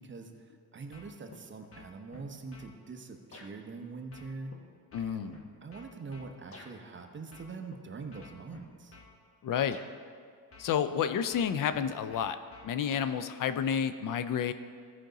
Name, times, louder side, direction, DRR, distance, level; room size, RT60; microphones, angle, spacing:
voice 1, 0.0-4.5 5.0-9.0, right 4 dB, 30° right, 4 dB, 0.8 m, -44 dB
sound 1, 0.9-1.4 1.7-2.7 3.3-3.5 4.1-6.7 7.3-7.8 8.1-9.1 9.7-9.9 10.5-11.0 11.3-13.1, left 2 dB, 35° left, 1.2 m, -52 dB
voice 2, 4.9-5.3 9.4-9.8 10.6-12.4 12.6-14.5, left 8 dB, 55° left, 11 dB, 0.5 m, -30 dB
15.0 x 5.1 x 3.9 m, 2.1 s
cardioid pair, 115°, 38 cm